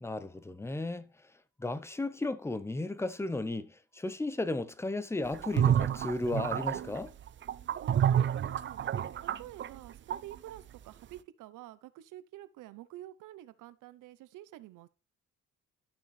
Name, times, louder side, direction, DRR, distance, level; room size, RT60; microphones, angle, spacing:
voice 1, 0.0-1.1 1.6-7.1, left 2 dB, 10° left, 0.7 m, -34 dB
sound 1, 5.3-10.6, right 9 dB, 40° right, 0.4 m, -29 dB
voice 2, 7.8-8.9 9.4-14.9, right 14 dB, 90° right, 0.7 m, -48 dB
12.0 x 6.0 x 3.2 m
cardioid pair, 90°, 30 cm